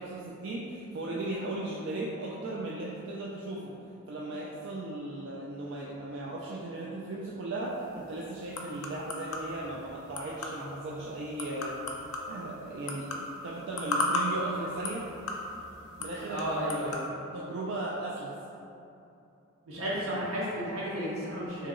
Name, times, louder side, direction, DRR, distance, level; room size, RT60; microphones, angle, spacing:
voice 1, 0.0-3.7 4.1-11.8 12.3-13.1 13.4-15.1 16.0-16.9 17.3-18.4, right 2 dB, 60° right, -5 dB, 0.3 m, -36 dB
sound 1, 7.6-17.1, left 2 dB, 85° left, 0.4 m, -37 dB
voice 2, 16.3-17.0 19.7-21.7, equal, 90° right, -7 dB, 0.7 m, -33 dB
2.9 x 2.7 x 3.7 m, 2.8 s
head